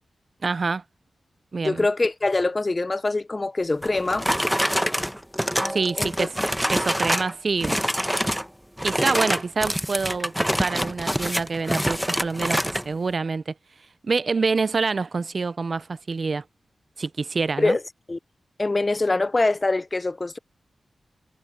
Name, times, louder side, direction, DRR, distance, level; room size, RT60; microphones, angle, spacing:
voice 1, 0.4-0.8 1.5-1.9 5.7-6.4 6.7-7.8 8.8-13.5 14.0-16.4 17.0-17.8, right 4 dB, 50° right, 0.5 m, -26 dB
voice 2, 1.6-4.3 6.0-6.3 17.6-17.8 18.1-18.2 18.6-20.4, left 2 dB, 30° left, 0.6 m, -24 dB
sound 1, 3.8-7.3 7.6-8.5 8.8-12.9, equal, ahead, 1.0 m, -25 dB
wide cardioid pair, 85°, 0 cm